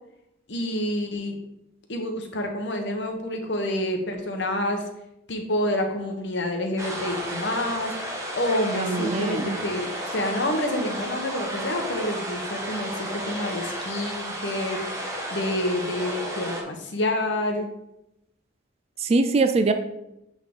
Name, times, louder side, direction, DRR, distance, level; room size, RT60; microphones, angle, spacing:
voice 1, 0.5-1.3 1.9-4.8 5.3-7.9 8.3-14.8 15.3-17.7, left 1 dB, 60° left, 3 dB, 1.0 m, -28 dB
sound 1, 6.8-16.6, right 1 dB, 15° right, 0.9 m, -33 dB
voice 2, 8.7-9.6 19.0-19.7, right 3 dB, 30° right, 8 dB, 0.3 m, -22 dB
8.1 x 3.6 x 3.7 m, 0.86 s
head